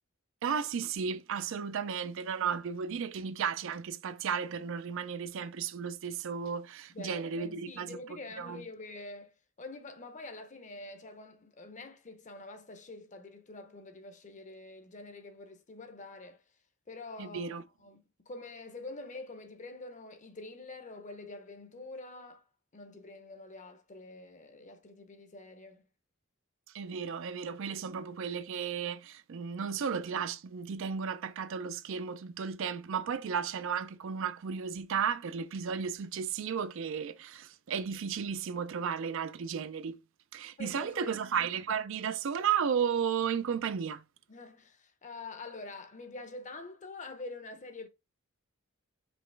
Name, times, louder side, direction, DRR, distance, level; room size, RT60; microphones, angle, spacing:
voice 1, 0.4-8.0 8.4-8.6 17.2-17.6 26.7-40.0 40.3-44.0, right 7 dB, 65° right, 0.4 m, -34 dB
voice 2, 6.9-16.4 16.9-22.4 22.7-25.9 40.6-41.2 44.3-47.9, left 3 dB, 35° left, 0.7 m, -46 dB
5.2 x 3.0 x 3.3 m
head